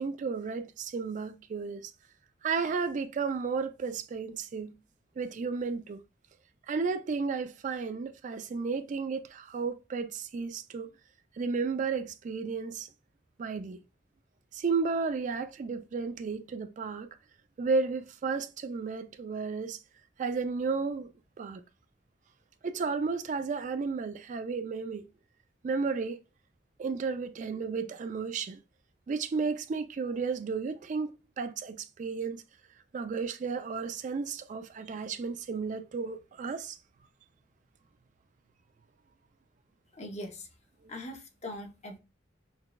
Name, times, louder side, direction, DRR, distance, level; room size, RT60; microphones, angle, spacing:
voice 1, 0.0-1.9 2.4-4.7 5.2-6.0 6.7-10.9 11.4-12.9 13.4-13.8 14.5-17.1 17.6-19.8 20.2-21.1 21.4-21.6 22.6-25.0 25.6-26.2 26.8-28.6 29.1-32.4 32.9-36.8, right 4 dB, 45° right, 0.3 m, -33 dB
voice 2, 39.9-40.5 40.9-42.0, left 1 dB, 40° left, 0.7 m, -41 dB
5.7 x 2.2 x 2.2 m
head